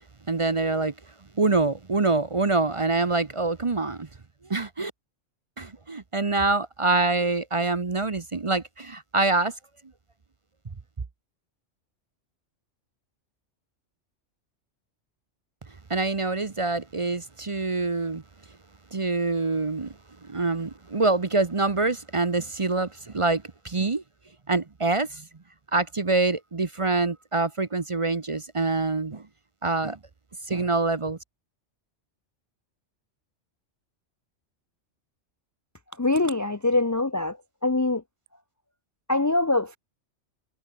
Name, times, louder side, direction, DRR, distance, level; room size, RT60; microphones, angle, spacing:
voice 1, 0.3-0.9 1.4-4.1 4.5-4.9 5.6-9.5 15.9-18.2 18.9-19.9 20.2-24.0 24.5-25.2 25.7-29.2 29.6-30.0 30.5-31.2, right 3 dB, 30° right, 0.8 m, -25 dB
voice 2, 36.0-37.4 37.6-38.0 39.1-39.8, left 2 dB, 25° left, 0.4 m, -23 dB
omnidirectional pair, 1.3 m